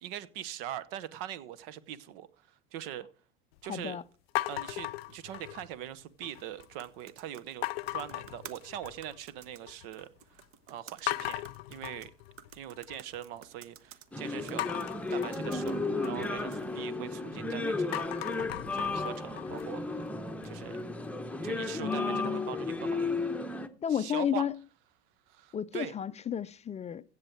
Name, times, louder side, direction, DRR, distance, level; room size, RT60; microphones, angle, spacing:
voice 1, 0.0-3.1 3.6-4.0 4.5-7.6 7.9-11.4 11.7-12.1 12.5-14.6 15.1-18.1 18.7-20.0 20.4-20.8 21.4-23.1 23.9-24.5 25.3-26.0, right 11 dB, 65° right, 1.1 m, -42 dB
voice 2, 3.7-4.0 21.8-22.5 23.8-24.5 25.5-27.0, left 8 dB, 20° left, 0.4 m, -32 dB
sound 1, 4.4-5.8 6.2-6.7 7.6-9.2 9.5-10.0 10.4-10.5 11.1-13.2 14.6-17.4 17.8-20.7, left 17 dB, 75° left, 0.6 m, -38 dB
sound 2, 6.2-16.8, right 9 dB, 45° right, 1.1 m, -54 dB
sound 3, 14.1-23.7, left 3 dB, 5° left, 0.9 m, -34 dB
15.5 x 7.5 x 4.6 m
hypercardioid pair, 80°, 30 cm